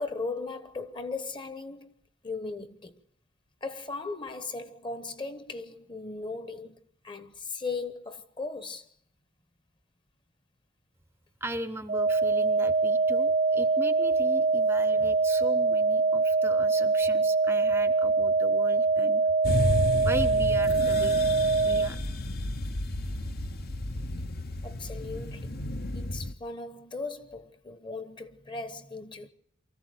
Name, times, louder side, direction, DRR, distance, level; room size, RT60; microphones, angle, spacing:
voice 1, 0.0-1.9 2.2-3.0 3.6-8.9 24.6-25.6 25.9-29.3, left 3 dB, 25° left, 1.1 m, -37 dB
voice 2, 11.4-19.2 20.0-21.2 21.6-22.0, right 1 dB, 10° right, 0.8 m, -38 dB
sound 1, 11.9-21.9, right 3 dB, 40° right, 0.8 m, -24 dB
sound 2, 19.4-26.3, left 1 dB, 55° left, 1.0 m, -31 dB
24.0 x 14.5 x 7.9 m
head